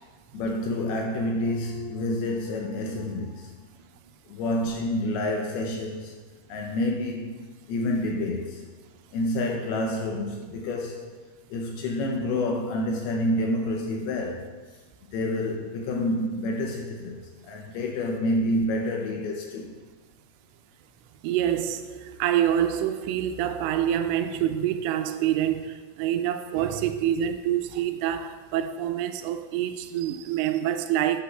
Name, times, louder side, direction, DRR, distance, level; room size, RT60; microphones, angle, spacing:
voice 1, 0.3-3.5 4.3-6.1 6.5-7.4 7.7-8.6 9.1-11.2 11.5-14.5 15.1-19.8, left 1 dB, 80° left, 2.4 m, -28 dB
voice 2, 21.2-31.2, right 10 dB, 90° right, 2.9 m, -26 dB
11.5 x 8.5 x 2.3 m
omnidirectional pair, 5.0 m